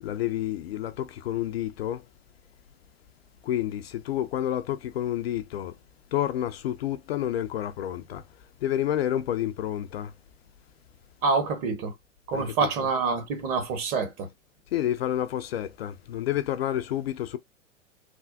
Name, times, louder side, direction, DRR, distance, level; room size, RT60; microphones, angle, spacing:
voice 1, 0.0-2.0 3.4-5.7 6.1-8.2 8.6-10.1 12.3-12.5 14.7-17.4, left 12 dB, 55° left, 0.4 m, -29 dB
voice 2, 11.2-11.9 12.3-14.3, right 4 dB, 35° right, 1.2 m, -26 dB
3.3 x 2.1 x 2.5 m
figure-of-eight pair, 100°, 38 cm